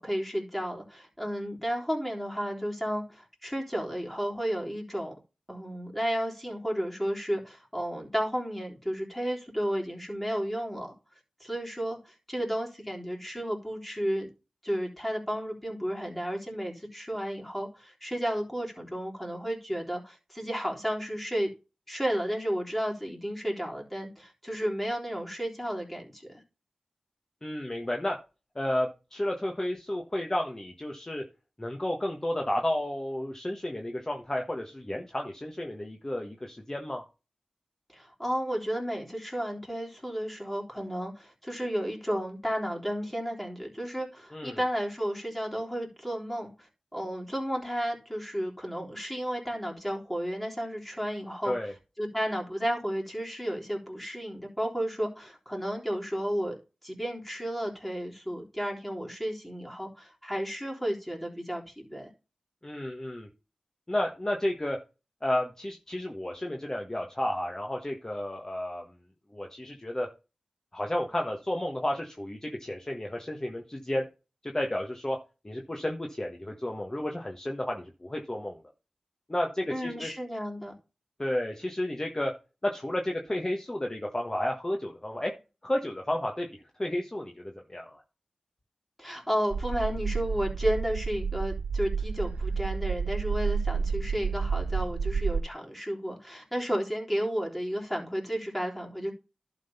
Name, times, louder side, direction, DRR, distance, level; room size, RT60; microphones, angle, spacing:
voice 1, 0.0-5.1 5.5-10.9 11.4-14.3 14.6-21.5 21.9-26.4 37.9-51.5 52.0-62.1 79.7-80.7 89.0-99.1, equal, 5° left, 3.5 m, -32 dB
voice 2, 27.4-28.2 28.5-31.2 31.6-37.0 44.3-44.6 51.4-51.7 62.6-63.3 63.9-64.8 65.2-68.9 69.3-70.1 70.7-74.0 74.4-75.2 75.4-78.6 79.3-80.1 81.2-82.3 82.6-85.3 85.6-88.0, left 1 dB, 25° left, 1.4 m, -32 dB
sound 1, 89.5-95.4, right 5 dB, 75° right, 0.5 m, -30 dB
11.5 x 4.0 x 5.5 m
cardioid pair, 45°, 2 cm